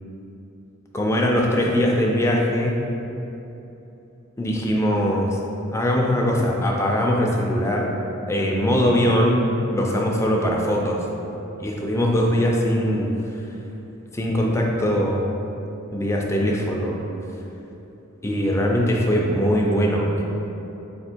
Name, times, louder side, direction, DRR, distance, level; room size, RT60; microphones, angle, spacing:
voice 1, 0.9-2.8 4.4-5.4 5.7-7.9 8.3-11.1 11.6-13.4 14.1-15.3 15.9-17.0 18.2-20.2, equal, 15° left, -1 dB, 0.4 m, -21 dB
3.4 x 2.8 x 4.4 m, 3.0 s
head